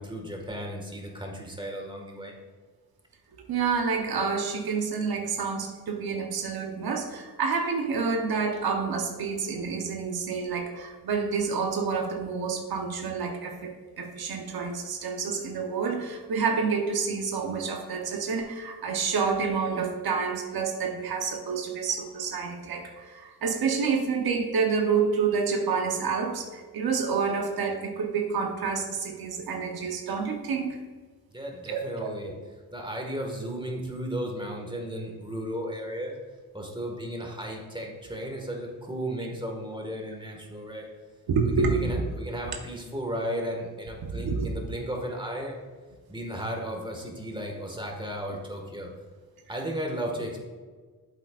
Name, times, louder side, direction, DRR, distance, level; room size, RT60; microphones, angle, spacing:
voice 1, 0.0-2.3 31.3-32.3 32.7-36.2 36.5-40.9 41.4-45.6 46.1-48.9 49.5-50.4, equal, 15° right, 0 dB, 1.8 m, -35 dB
voice 2, 3.5-30.8 31.7-32.3 41.3-42.0 42.4-42.5 44.1-44.5, right 5 dB, 75° right, 2 dB, 1.0 m, -28 dB
8.8 x 7.6 x 2.5 m, 1.4 s
cardioid pair, 80°, 37 cm